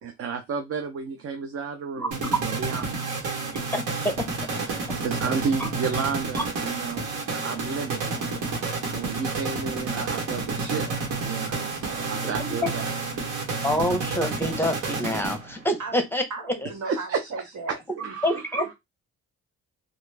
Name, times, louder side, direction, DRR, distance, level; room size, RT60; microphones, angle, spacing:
voice 1, 0.0-3.3 4.7-8.3 8.9-12.9 16.8-17.3 18.0-18.7, right 5 dB, 50° right, 0.7 m, -32 dB
sound 1, 2.1-15.7, right 3 dB, 85° right, 1.3 m, -30 dB
voice 2, 3.7-4.2 12.2-12.5 13.6-16.2 16.6-16.7 18.2-18.7, equal, 5° left, 0.9 m, -27 dB
voice 3, 16.3-18.7, right 3 dB, 70° right, 1.5 m, -37 dB
3.0 x 2.5 x 3.3 m
cardioid pair, 90°, 30 cm